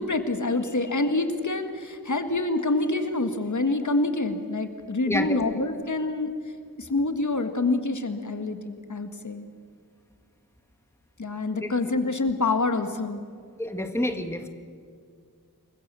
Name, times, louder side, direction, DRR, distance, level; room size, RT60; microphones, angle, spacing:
voice 1, 0.0-6.3 6.8-9.5 11.2-13.2, left 2 dB, 50° left, 8 dB, 1.8 m, -26 dB
voice 2, 5.1-5.6 11.5-11.7 13.6-14.5, left 1 dB, 5° left, 6 dB, 1.8 m, -29 dB
28.5 x 22.5 x 7.0 m, 2.1 s
wide cardioid pair, 80°, 37 cm